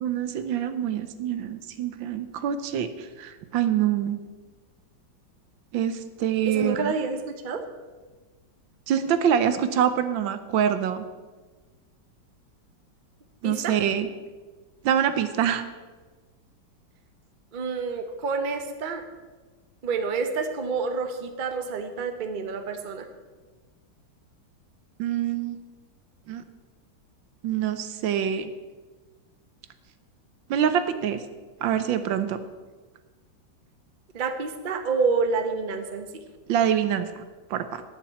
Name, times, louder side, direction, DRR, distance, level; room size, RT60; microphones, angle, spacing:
voice 1, 0.0-4.2 5.7-6.9 8.9-11.0 13.4-14.1 14.8-15.7 25.0-25.6 26.3-26.4 27.4-28.5 30.5-31.2 31.6-32.4 36.5-37.2 37.5-37.8, right 9 dB, 80° right, 10 dB, 1.5 m, -25 dB
voice 2, 6.4-7.6 13.4-13.7 17.5-19.0 19.8-23.1 34.1-36.1, right 4 dB, 40° right, 6 dB, 0.8 m, -28 dB
10.5 x 6.0 x 8.6 m, 1.3 s
omnidirectional pair, 2.1 m